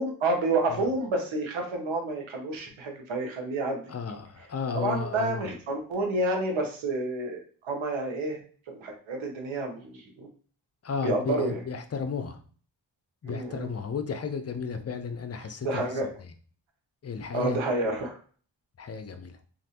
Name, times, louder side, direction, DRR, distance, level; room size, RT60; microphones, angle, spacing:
voice 1, 0.0-3.8 4.7-8.4 8.7-10.3 11.0-11.6 13.2-13.7 15.6-16.1 17.3-18.2, right 2 dB, 90° right, 2 dB, 0.9 m, -29 dB
voice 2, 3.9-5.5 10.8-12.4 13.2-15.8 16.2-16.3 17.0-17.6 18.8-19.4, left 5 dB, 35° left, 9 dB, 0.5 m, -33 dB
3.1 x 2.6 x 2.8 m, 0.43 s
cardioid pair, 50°, 46 cm